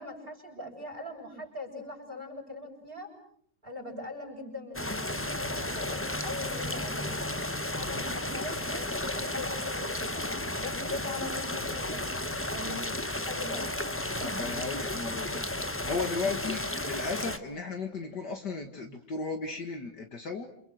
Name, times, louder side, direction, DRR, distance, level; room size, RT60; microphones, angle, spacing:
voice 1, 0.0-3.1 3.6-7.2 7.7-12.1 12.5-12.9 13.2-13.7, left 2 dB, 25° right, 2 dB, 8.0 m, -41 dB
sound 1, 4.7-17.4, left 1 dB, 10° left, 0.8 m, -33 dB
voice 2, 14.1-20.5, left 4 dB, 55° left, 4 dB, 2.5 m, -35 dB
29.5 x 29.0 x 6.5 m, 0.64 s
omnidirectional pair, 2.2 m